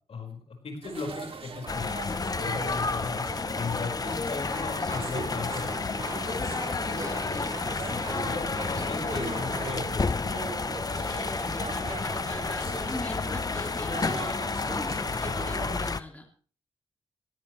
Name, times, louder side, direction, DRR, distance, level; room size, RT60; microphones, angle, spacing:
voice 1, 0.1-3.2 3.5-6.0 7.9-10.4, left 4 dB, 80° left, 3 dB, 5.2 m, -37 dB
sound 1, 0.8-15.9, right 4 dB, 70° right, 2.7 m, -40 dB
sound 2, 1.7-16.0, left 4 dB, 40° left, 0.8 m, -31 dB
voice 2, 4.0-4.3 6.9-7.7 8.5-9.2 11.0-16.3, left 1 dB, 15° left, 2 dB, 3.1 m, -41 dB
sound 3, 4.4-9.7, right 3 dB, 40° right, 5.0 m, -43 dB
17.5 x 17.5 x 3.3 m, 0.39 s
wide cardioid pair, 80°, 10 cm